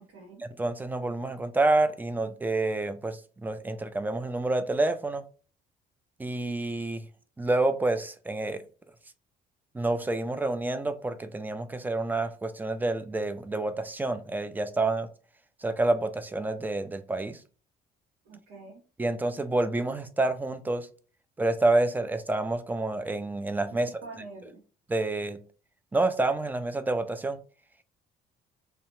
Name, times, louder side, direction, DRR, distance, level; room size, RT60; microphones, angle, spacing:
voice 1, 0.4-5.2 6.2-7.1 7.4-8.6 9.7-15.1 15.6-17.4 19.0-20.9 21.4-23.9 24.9-25.4 25.9-27.4, right 2 dB, 10° right, 0.3 m, -28 dB
voice 2, 18.3-18.8 23.8-24.6, right 4 dB, 90° right, 0.9 m, -44 dB
2.8 x 2.1 x 3.0 m
cardioid pair, 110°, 17 cm